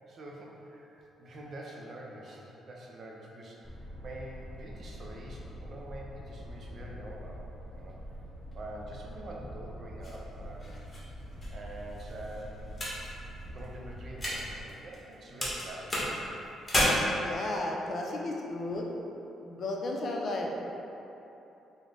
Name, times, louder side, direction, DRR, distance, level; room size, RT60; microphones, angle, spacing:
voice 1, 0.1-3.6 4.0-7.4 7.7-8.0 8.5-10.8 11.5-12.6 13.5-16.0, right 1 dB, 50° right, -2 dB, 0.5 m, -45 dB
sound 1, 3.6-14.6, equal, ahead, 0.5 m, -44 dB
sound 2, 10.0-15.1 15.4-16.8, left 1 dB, 20° left, 1.0 m, -35 dB
voice 2, 17.2-18.9 19.4-20.6, left 2 dB, 55° left, 0 dB, 0.4 m, -33 dB
3.7 x 2.0 x 3.3 m, 2.9 s
cardioid pair, 90°, 0 cm